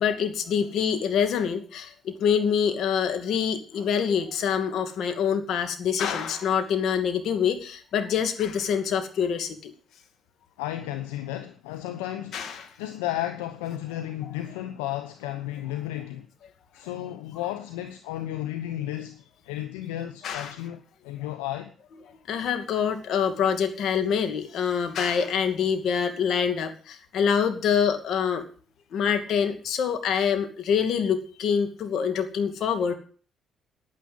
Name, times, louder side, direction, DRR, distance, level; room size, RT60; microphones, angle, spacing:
voice 1, 0.0-9.7 12.3-12.6 20.2-20.5 22.3-28.5 28.9-33.0, left 7 dB, 70° left, 2.4 m, -25 dB
voice 2, 10.6-12.4 12.8-16.3 16.7-21.7, left 13 dB, 90° left, 0.9 m, -33 dB
10.0 x 9.6 x 9.3 m
hypercardioid pair, 50°, 0 cm